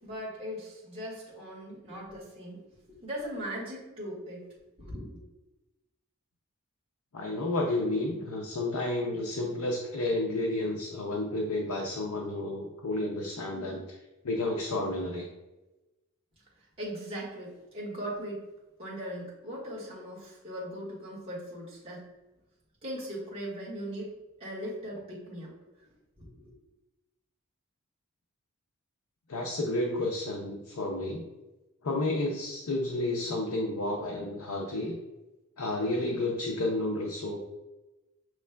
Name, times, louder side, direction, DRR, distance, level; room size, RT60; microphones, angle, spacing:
voice 1, 0.0-2.6 3.0-4.4 4.8-5.2 16.8-18.4 18.8-22.1 22.8-25.5 26.2-26.5, equal, 25° right, -6 dB, 1.5 m, -39 dB
voice 2, 7.1-13.8 14.2-15.3 29.3-31.2 31.8-34.9 35.6-37.4, left 2 dB, 80° left, 0 dB, 0.6 m, -31 dB
6.1 x 3.1 x 2.2 m, 1.0 s
head